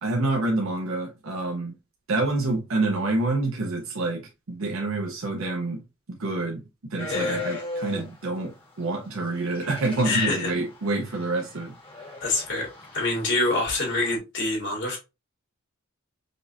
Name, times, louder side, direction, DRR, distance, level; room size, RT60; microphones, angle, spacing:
voice 1, 0.0-1.8 2.1-5.8 6.1-6.6 6.9-11.7, right 2 dB, 70° right, 0.7 m, -27 dB
sound 1, 7.0-8.2 9.4-14.2, left 2 dB, 25° left, 1.2 m, -37 dB
voice 2, 7.1-7.4 10.0-10.5 12.2-12.7 12.9-15.0, left 2 dB, 60° left, 2.1 m, -26 dB
5.1 x 2.5 x 2.7 m
head